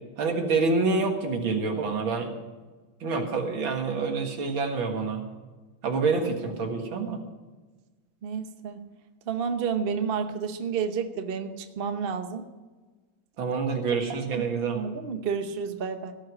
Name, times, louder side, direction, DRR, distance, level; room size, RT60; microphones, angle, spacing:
voice 1, 0.2-2.3 3.0-5.2 5.8-7.2 13.4-14.8, right 4 dB, 75° right, 3 dB, 2.5 m, -27 dB
voice 2, 8.2-8.8 9.3-12.4 14.3-16.1, right 6 dB, 40° right, 7 dB, 0.8 m, -30 dB
17.0 x 5.8 x 9.4 m, 1.3 s
omnidirectional pair, 2.2 m